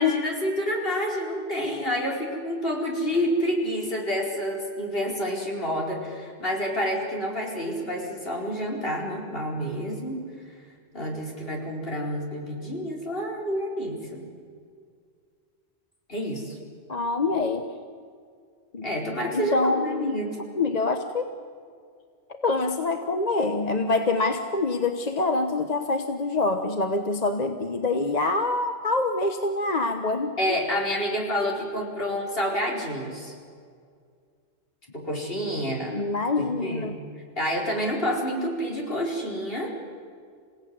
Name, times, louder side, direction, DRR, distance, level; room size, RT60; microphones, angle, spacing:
voice 1, 0.0-10.2 10.9-14.2 16.1-16.6 18.8-20.4 30.4-33.3 34.9-36.0 36.4-36.9 37.4-39.7, equal, 60° left, -2 dB, 4.8 m, -28 dB
voice 2, 16.9-17.7 18.7-18.9 19.3-20.2 20.6-21.3 22.4-30.4 35.9-36.9, left 3 dB, 40° left, 6 dB, 1.1 m, -25 dB
28.0 x 17.0 x 9.5 m, 2.2 s
omnidirectional pair, 1.1 m